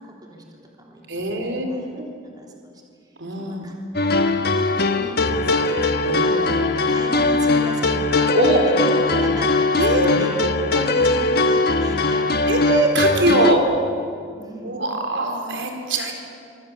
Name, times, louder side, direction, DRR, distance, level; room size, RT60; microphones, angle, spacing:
voice 1, 0.0-1.9 2.3-2.8 3.3-3.8 4.3-12.7 14.4-14.7, right 1 dB, 20° right, -1 dB, 3.4 m, -37 dB
voice 2, 1.1-1.7 1.9-2.1 3.2-3.7 6.0-6.5 8.3-8.6 9.8-10.1 10.4-10.5 12.5-13.6 14.6-16.1, right 2 dB, 75° right, 3 dB, 3.8 m, -22 dB
sound 1, 3.9-13.5, left 2 dB, 55° left, 1.3 m, -20 dB
26.5 x 24.5 x 7.3 m, 2.3 s
head